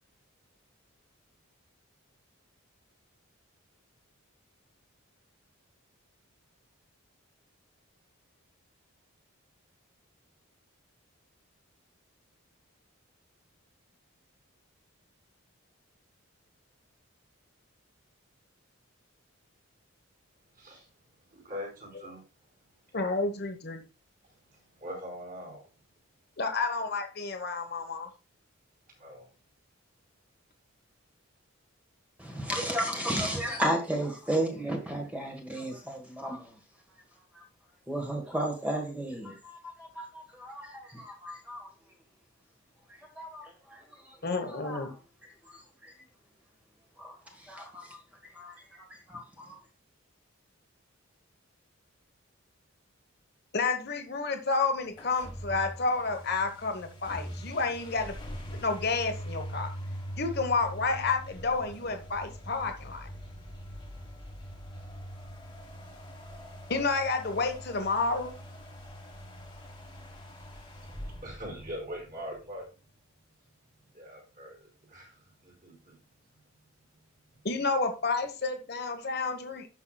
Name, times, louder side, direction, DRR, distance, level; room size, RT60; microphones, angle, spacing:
voice 1, 20.6-20.9 21.3-22.2 24.5-25.7 29.0-29.3 70.8-72.7 73.9-75.2 75.4-76.0, equal, 40° right, 4.9 m, -42 dB
voice 2, 22.9-23.8 26.4-28.1 44.2-44.9 53.5-58.1 58.5-59.7 60.2-63.1 66.7-68.3 77.4-79.7, left 3 dB, 50° left, 1.2 m, -30 dB
voice 3, 32.2-36.5 37.9-41.7 43.2-43.4 43.7-44.1 44.5-44.9 45.5-45.9 47.0-47.2 47.4-48.0 48.3-49.5, right 1 dB, 5° right, 1.5 m, -34 dB
sound 1, 54.9-72.4, equal, 20° left, 1.6 m, -43 dB
16.5 x 5.9 x 2.3 m
head